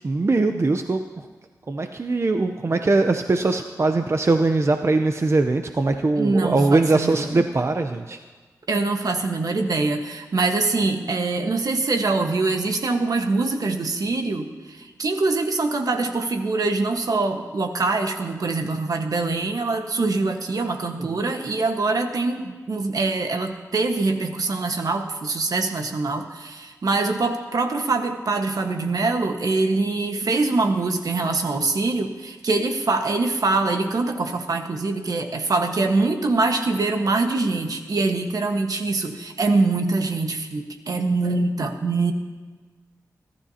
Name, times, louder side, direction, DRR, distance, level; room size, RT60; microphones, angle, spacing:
voice 1, 0.0-1.3 1.7-8.2 21.0-21.1, right 3 dB, 45° right, 6 dB, 0.7 m, -21 dB
voice 2, 6.2-7.4 8.7-42.1, right 3 dB, 70° right, 5 dB, 1.4 m, -24 dB
27.0 x 12.5 x 2.9 m, 1.4 s
cardioid pair, 50°, 6 cm